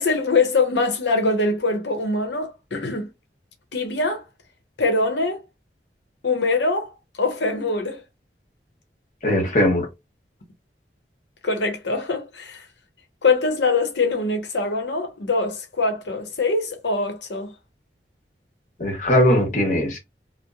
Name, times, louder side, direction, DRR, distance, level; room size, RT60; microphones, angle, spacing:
voice 1, 0.0-3.1 3.7-4.2 4.8-5.4 6.2-6.9 7.2-8.0 11.4-12.6 13.2-17.5, left 3 dB, 85° left, 0.8 m, -23 dB
voice 2, 9.2-9.9 18.8-20.0, left 1 dB, 45° left, 0.9 m, -19 dB
2.9 x 2.0 x 2.2 m
head